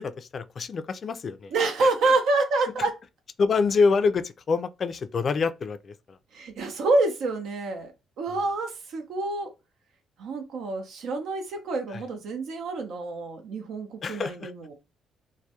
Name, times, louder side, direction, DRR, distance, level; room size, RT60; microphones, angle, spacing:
voice 1, 0.0-1.5 1.8-2.1 2.8-2.9 3.4-6.2 8.3-8.4 11.9-12.0 14.0-14.5, left 4 dB, 45° left, 0.3 m, -26 dB
voice 2, 1.5-3.0 6.3-7.9 8.2-9.5 10.2-14.7, right 3 dB, 80° right, 0.6 m, -27 dB
2.2 x 2.1 x 2.8 m
cardioid pair, 90°, 0 cm